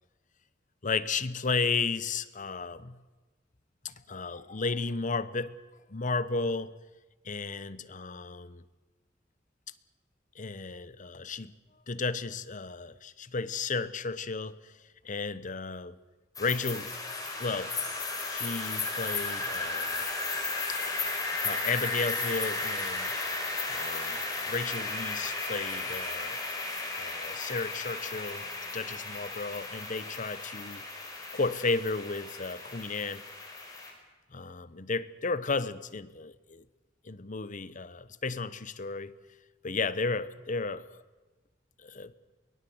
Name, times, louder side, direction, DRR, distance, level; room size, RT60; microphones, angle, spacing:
voice 1, 0.8-3.0 3.8-5.6 5.9-6.8 7.2-8.6 10.3-11.5 11.9-14.7 15.0-15.9 16.4-16.9 17.4-17.7 18.3-20.1 21.4-23.1 23.7-24.2 24.5-26.4 27.0-28.5 28.7-30.8 31.3-33.3 34.3-36.6 37.0-39.1 39.6-40.9 41.8-42.1, left 4 dB, 45° left, 0.9 m, -33 dB
sound 1, 16.4-33.9, left 3 dB, 20° left, 4.5 m, -34 dB
23.0 x 18.5 x 7.9 m
head